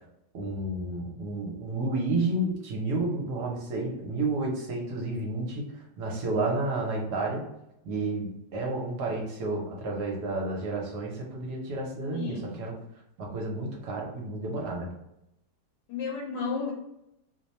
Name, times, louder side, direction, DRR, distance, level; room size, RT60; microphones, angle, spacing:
voice 1, 0.3-7.4 7.8-12.8 13.2-14.9, right 2 dB, 70° right, -1 dB, 1.3 m, -31 dB
voice 2, 12.1-12.6 15.9-16.7, left 5 dB, 90° left, -2 dB, 1.4 m, -32 dB
3.1 x 2.2 x 4.1 m, 0.83 s
omnidirectional pair, 1.9 m